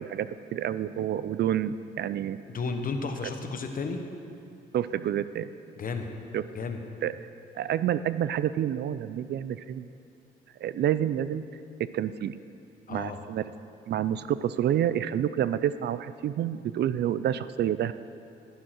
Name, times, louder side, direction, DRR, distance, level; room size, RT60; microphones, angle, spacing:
voice 1, 0.0-2.4 4.7-5.5 6.3-6.4 7.0-7.1 7.6-9.9 10.6-11.4 11.8-12.4 12.9-13.5 13.9-17.9, right 10 dB, 60° right, 14 dB, 0.4 m, -28 dB
voice 2, 2.5-4.0 5.8-6.1 6.5-6.8 12.9-13.2, left 4 dB, 45° left, 5 dB, 1.1 m, -32 dB
11.5 x 10.5 x 4.5 m, 2.6 s
cardioid pair, 90°, 20 cm